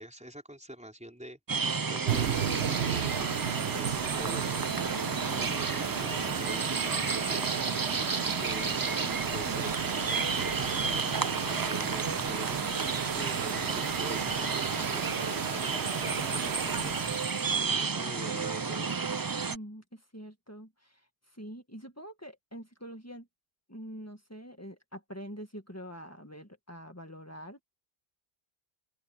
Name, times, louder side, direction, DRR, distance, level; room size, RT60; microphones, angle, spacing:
voice 1, 0.0-1.6 1.9-3.2 3.7-4.7 5.5-7.5 8.4-8.8 9.3-17.0 17.6-19.0, equal, 5° right, 4.6 m, -46 dB
sound 1, 1.5-19.6, right 5 dB, 30° right, 0.4 m, -32 dB
sound 2, 2.1-17.6, right 8 dB, 90° right, 1.2 m, -35 dB
voice 2, 19.5-21.0 21.3-23.3 23.7-27.6, equal, 15° left, 1.8 m, -45 dB
open air
omnidirectional pair, 1.1 m